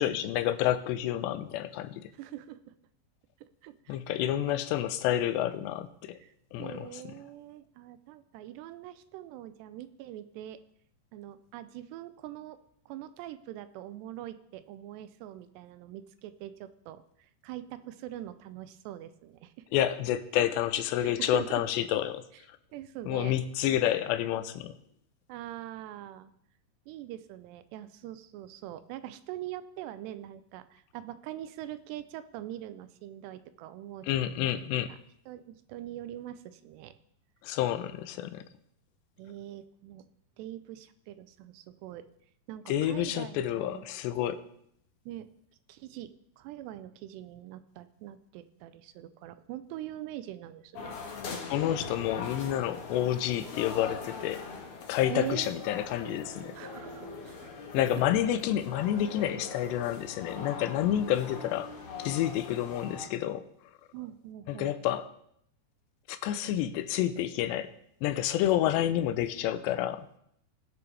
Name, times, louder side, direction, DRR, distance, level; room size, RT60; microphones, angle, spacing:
voice 1, 0.0-2.1 3.9-6.2 6.5-7.0 19.7-22.2 23.1-24.7 34.1-34.9 37.4-38.4 42.7-44.4 51.5-54.4 54.9-56.5 57.7-61.7 62.0-63.5 64.5-65.1 66.1-67.7 68.0-70.1, left 12 dB, 90° left, 12 dB, 2.9 m, -29 dB
voice 2, 2.1-2.7 3.6-4.6 6.1-6.3 6.6-10.6 11.1-12.6 12.9-19.7 21.0-21.6 22.7-23.3 23.7-23.8 25.3-26.3 26.9-34.6 34.9-35.0 35.3-36.9 39.2-40.1 40.4-42.1 42.5-43.9 45.1-45.3 45.7-46.1 46.4-51.0 55.1-55.6 56.6-57.5 57.9-58.0 63.9-64.8, right 13 dB, 90° right, 12 dB, 2.8 m, -43 dB
sound 1, 50.7-63.1, left 4 dB, 70° left, 1.2 m, -42 dB
20.5 x 6.9 x 3.4 m, 0.71 s
omnidirectional pair, 4.8 m